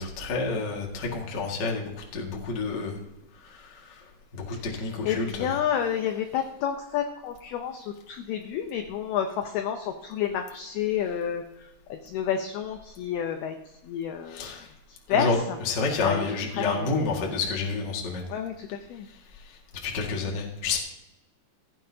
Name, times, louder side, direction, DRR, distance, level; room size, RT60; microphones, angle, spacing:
voice 1, 0.0-3.0 3.4-4.0 4.3-5.6 14.3-14.7 15.1-18.2 19.5-20.8, left 4 dB, 60° left, 0 dB, 1.0 m, -29 dB
voice 2, 4.7-13.6 13.8-14.5 14.9-15.6 16.0-17.3 18.3-19.1, left 9 dB, 90° left, 5 dB, 2.2 m, -30 dB
16.0 x 13.5 x 2.8 m, 0.96 s
omnidirectional pair, 5.6 m